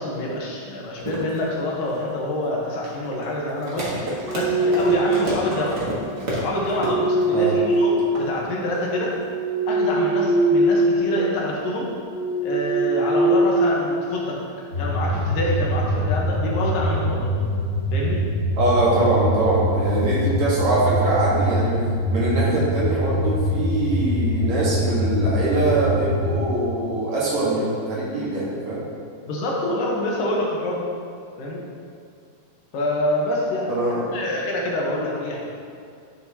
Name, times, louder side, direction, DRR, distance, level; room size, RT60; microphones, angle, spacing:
voice 1, 0.0-5.8 6.3-9.1 9.7-11.9 12.4-14.4 14.8-17.3 17.9-18.2 29.3-30.8 31.4-31.6 32.7-35.5, left 1 dB, 75° left, -3 dB, 2.7 m, -26 dB
sound 1, 1.0-9.3, right 1 dB, 85° right, 0.8 m, -31 dB
sound 2, 4.0-5.5 6.5-8.6 9.1-10.9 11.2-11.5 12.0-14.3, right 2 dB, 40° right, 1.0 m, -22 dB
sound 3, 14.7-26.5, equal, 40° left, 1.3 m, -24 dB
voice 2, 18.6-21.8 22.1-28.8 33.7-34.2, right 2 dB, 60° right, -6 dB, 2.5 m, -23 dB
11.0 x 6.5 x 2.8 m, 2.3 s
omnidirectional pair, 4.1 m